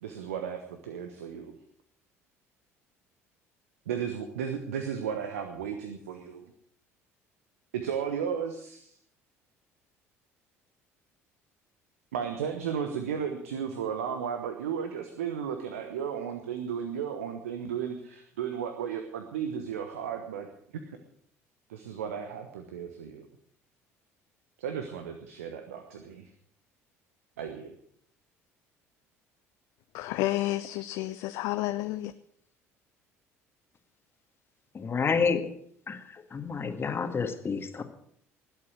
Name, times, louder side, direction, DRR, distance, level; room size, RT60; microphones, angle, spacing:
voice 1, 0.0-1.5 3.9-6.4 7.7-9.0 12.1-20.5 21.7-23.3 24.6-26.3 27.4-27.7, right 7 dB, 75° right, 1.2 m, -34 dB
voice 2, 29.9-32.1, left 16 dB, 60° left, 0.6 m, -30 dB
voice 3, 34.7-35.5 35.9-37.8, left 5 dB, 30° left, 1.9 m, -29 dB
20.0 x 8.2 x 6.4 m
figure-of-eight pair, 60°, 8 cm